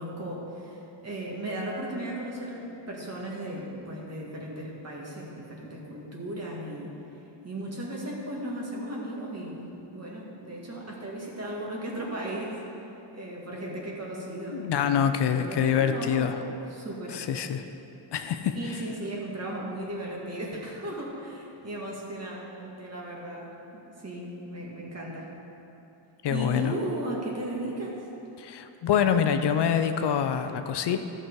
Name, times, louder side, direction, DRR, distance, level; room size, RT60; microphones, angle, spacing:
voice 1, 0.0-6.9 7.4-9.7 9.9-12.6 13.1-17.2 18.6-25.3 26.3-28.0, right 1 dB, 35° right, -3 dB, 1.9 m, -36 dB
voice 2, 14.5-16.4 17.1-17.6 18.1-18.8 26.2-26.7 28.4-31.0, left 8 dB, 65° left, 8 dB, 0.6 m, -26 dB
14.0 x 6.1 x 4.6 m, 3.0 s
wide cardioid pair, 135°, 45 cm